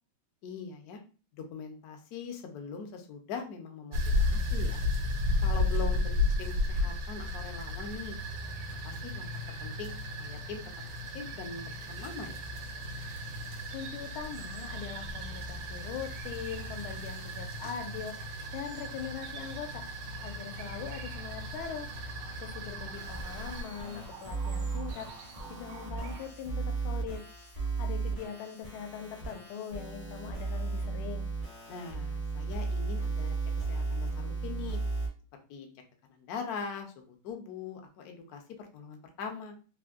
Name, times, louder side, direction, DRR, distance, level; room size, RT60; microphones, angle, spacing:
voice 1, 0.4-1.0 1.3-4.8 5.4-8.2 8.8-9.3 9.6-10.6 11.1-12.4 31.7-33.4 33.7-34.8 35.5-35.7 36.1-39.6, left 5 dB, 70° left, 4 dB, 0.9 m, -42 dB
sound 1, 3.9-23.6, left 1 dB, 70° right, 1.3 m, -34 dB
sound 2, 8.2-26.3, right 3 dB, 90° right, 1.4 m, -51 dB
voice 2, 13.7-19.8 20.2-21.9 22.4-27.2 27.5-31.3, left 8 dB, 85° left, 6 dB, 1.4 m, -41 dB
sound 3, 22.9-35.1, right 4 dB, 45° left, 0.6 m, -35 dB
3.5 x 2.5 x 2.4 m, 0.36 s
omnidirectional pair, 2.2 m